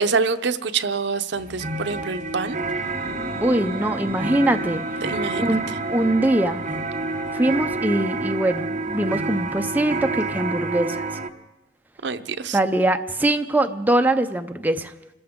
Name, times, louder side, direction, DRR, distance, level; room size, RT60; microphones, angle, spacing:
voice 1, 0.0-2.6 5.0-5.5 12.0-12.6, right 5 dB, 70° right, 10 dB, 0.7 m, -25 dB
sound 1, 1.4-11.3, right 3 dB, 40° right, 0.9 m, -28 dB
sound 2, 2.7-10.2, left 1 dB, 15° left, 1.5 m, -41 dB
voice 2, 3.4-4.8 5.3-5.6 5.9-6.7 7.3-11.1 12.5-14.9, right 1 dB, 10° right, 6 dB, 0.5 m, -22 dB
26.5 x 14.0 x 3.7 m, 1.0 s
head